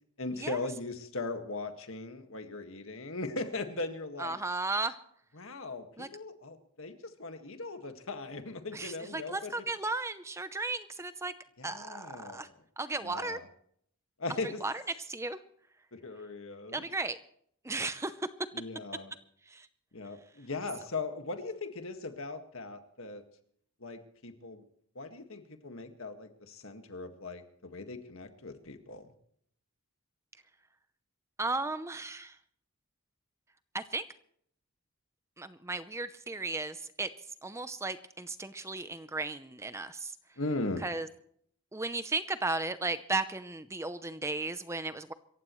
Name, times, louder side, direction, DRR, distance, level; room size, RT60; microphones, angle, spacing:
voice 1, 0.2-4.4 5.3-9.5 11.6-12.5 13.0-13.5 14.2-14.6 15.9-16.9 17.7-17.8 18.5-19.1 19.9-23.2 23.8-24.6 25.0-29.1 40.4-40.8, left 3 dB, 65° left, 7 dB, 1.8 m, -39 dB
voice 2, 4.2-5.0 6.0-6.1 8.7-11.3 11.6-12.5 12.8-13.4 14.4-14.8 15.1-15.4 16.7-17.2 17.6-18.1 19.5-19.7 31.4-32.3 33.7-34.0 35.4-37.1 37.4-40.1 40.8-41.1 41.7-45.1, right 3 dB, 15° right, 12 dB, 0.6 m, -35 dB
27.0 x 15.0 x 3.1 m, 0.66 s
head